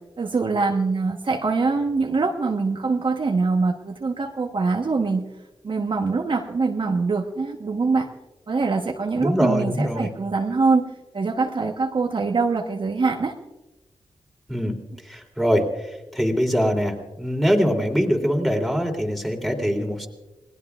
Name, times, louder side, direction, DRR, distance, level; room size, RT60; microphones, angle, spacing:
voice 1, 0.2-5.2 5.6-8.1 8.5-10.8 11.1-13.3, right 4 dB, 50° right, 2 dB, 1.2 m, -23 dB
voice 2, 9.2-10.1 14.5-14.7 15.0-20.1, equal, ahead, 2 dB, 3.2 m, -23 dB
28.0 x 19.5 x 2.4 m, 1.1 s
cardioid pair, 75°, 11 cm